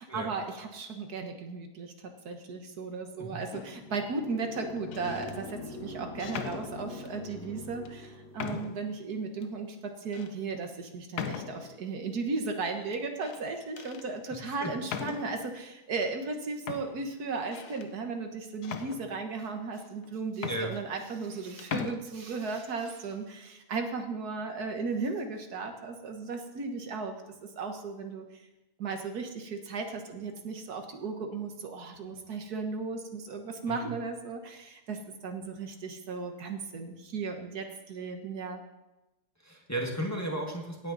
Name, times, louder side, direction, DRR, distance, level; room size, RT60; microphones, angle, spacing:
voice 1, 0.0-27.1 27.4-28.4 28.8-38.6, right 4 dB, 75° right, 5 dB, 1.8 m, -36 dB
sound 1, 3.5-4.0 4.8-5.4 6.2-7.2 7.8-7.9 8.4-8.9 9.4-9.5 10.1-10.3 11.1-11.8 12.9-13.4 13.8-14.1 14.9-15.5 16.3-16.4 16.7-17.9 18.6-19.5 20.0-20.1 20.3-21.3 21.6-22.0, left 7 dB, 80° left, 1.4 m, -39 dB
sound 2, 3.7-8.6, left 2 dB, 65° left, 1.9 m, -43 dB
voice 2, 39.4-40.9, right 1 dB, 10° left, 0 dB, 1.7 m, -35 dB
17.0 x 9.3 x 4.0 m, 1.0 s
omnidirectional pair, 1.7 m